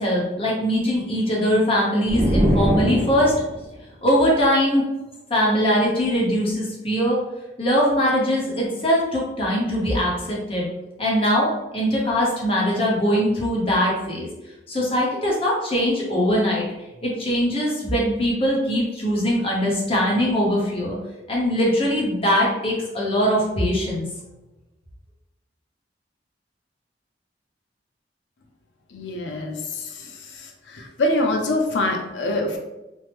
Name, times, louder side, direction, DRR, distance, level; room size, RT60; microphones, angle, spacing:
voice 1, 0.0-3.3 4.0-4.8 5.3-7.2 7.6-10.7 11.0-14.3 14.7-16.6 17.0-21.0 21.3-24.1, equal, 30° left, -4 dB, 0.8 m, -21 dB
sound 1, 2.1-3.7, equal, 45° right, 0.5 m, -22 dB
voice 2, 28.9-29.6 31.0-32.6, left 1 dB, 80° left, 2 dB, 0.6 m, -23 dB
3.0 x 2.0 x 3.3 m, 0.99 s
head